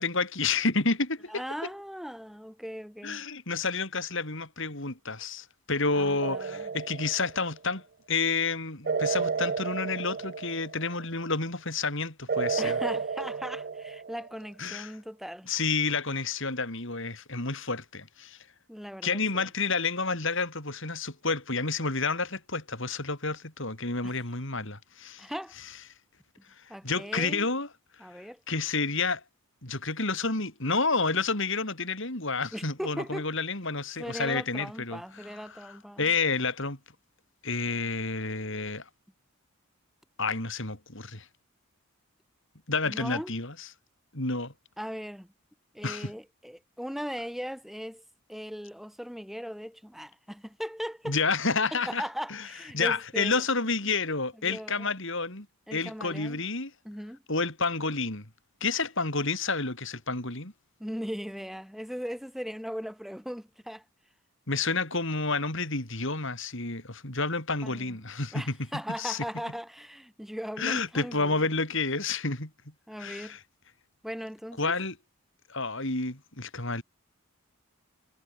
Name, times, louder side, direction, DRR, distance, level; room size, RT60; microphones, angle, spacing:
voice 1, 0.0-1.4 3.0-7.8 8.1-12.8 14.6-14.9 15.5-18.4 19.0-25.3 26.8-27.7 28.5-29.2 29.6-35.0 35.6-35.7 36.0-36.8 37.4-38.8 40.2-41.2 42.7-43.7 44.1-44.5 45.8-46.1 51.1-52.0 52.3-52.5 52.7-55.5 55.7-56.7 57.3-58.3 58.6-60.5 64.5-68.6 69.0-69.2 70.6-72.5 73.0-73.4 74.6-74.9 75.5-76.8, left 4 dB, 55° left, 4.5 m, -30 dB
voice 2, 1.3-3.2 5.9-6.7 12.6-15.5 18.7-19.5 24.0-24.2 25.2-25.5 26.7-27.5 28.0-28.4 32.5-33.2 34.0-36.1 42.9-43.3 44.8-45.3 45.7-48.0 48.3-51.2 51.7-53.4 54.4-54.9 55.7-56.4 56.8-57.2 60.8-63.8 67.6-68.0 68.3-71.5 72.9-73.4 74.0-74.7, equal, ahead, 2.9 m, -38 dB
sound 1, 6.2-7.6 8.9-11.0 12.3-14.4, right 5 dB, 45° right, 0.5 m, -32 dB
head